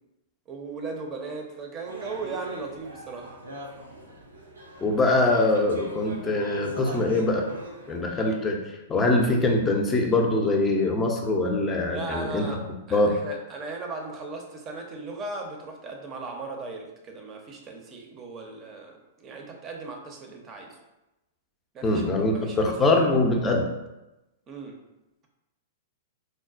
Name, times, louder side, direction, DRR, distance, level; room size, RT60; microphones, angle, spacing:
voice 1, 0.5-3.3 11.9-12.6 12.9-20.8 21.7-23.2 24.5-24.8, right 3 dB, 30° right, 2 dB, 0.6 m, -37 dB
sound 1, 1.8-8.4, right 1 dB, 90° right, 0.5 m, -42 dB
voice 2, 4.8-7.4 7.9-8.6 8.9-12.5 12.9-13.1 21.8-23.6, left 2 dB, 20° left, 1 dB, 0.5 m, -23 dB
3.9 x 2.1 x 2.5 m, 0.98 s
hypercardioid pair, 110°, 0 cm